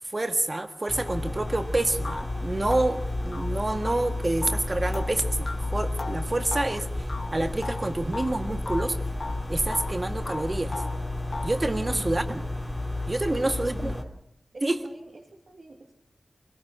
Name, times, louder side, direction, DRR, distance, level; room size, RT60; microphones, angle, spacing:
voice 1, 0.1-6.9 7.3-9.0 9.5-10.8 11.4-12.4 13.1-13.9 14.6-14.8, right 2 dB, 35° right, 7 dB, 1.7 m, -28 dB
sound 1, 0.9-14.0, left 2 dB, 10° left, 2.6 m, -32 dB
sound 2, 1.5-1.6 2.0-8.4 8.7-10.0 10.3-11.7, left 3 dB, 55° left, 2.0 m, -38 dB
voice 2, 13.4-14.1 14.5-15.9, right 2 dB, 65° right, -1 dB, 2.5 m, -45 dB
24.0 x 18.0 x 6.2 m, 0.70 s
wide cardioid pair, 75°, 0 cm